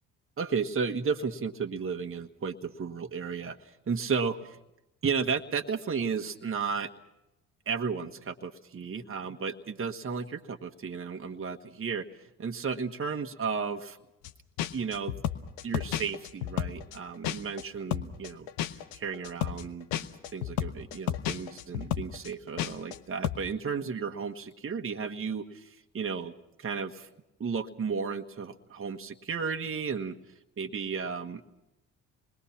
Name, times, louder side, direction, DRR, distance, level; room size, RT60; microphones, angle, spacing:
voice 1, 0.4-4.6 5.0-6.9 7.6-14.0 14.7-15.2 15.6-18.5 18.9-19.9 20.3-26.3 26.6-27.1 27.4-30.2 30.6-31.5, right 5 dB, 35° right, 5 dB, 1.5 m, -33 dB
sound 1, 14.2-14.3 14.6-17.6 17.9-23.0 23.2-23.5, left 12 dB, 75° left, 1.1 m, -32 dB
27.5 x 21.5 x 5.9 m, 0.90 s
hypercardioid pair, 50°, 37 cm